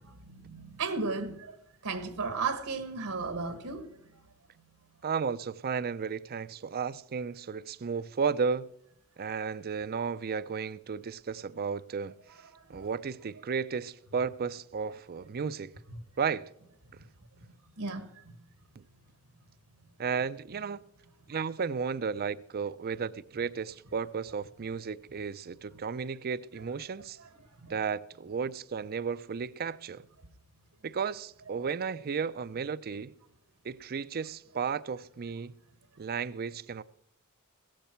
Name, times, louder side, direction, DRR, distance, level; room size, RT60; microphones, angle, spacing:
voice 1, 0.2-1.6 1.8-4.0 12.7-12.8 15.9-16.0 17.8-18.3 27.6-27.8, right 4 dB, 80° right, 1.5 m, -35 dB
voice 2, 5.0-8.7 9.2-12.1 12.7-15.7 16.2-16.5 18.8-18.9 20.0-20.8 21.3-27.2 27.7-30.0 30.8-33.1 33.6-35.6 36.0-36.8, right 6 dB, 45° right, 0.5 m, -33 dB
16.5 x 14.0 x 4.5 m
head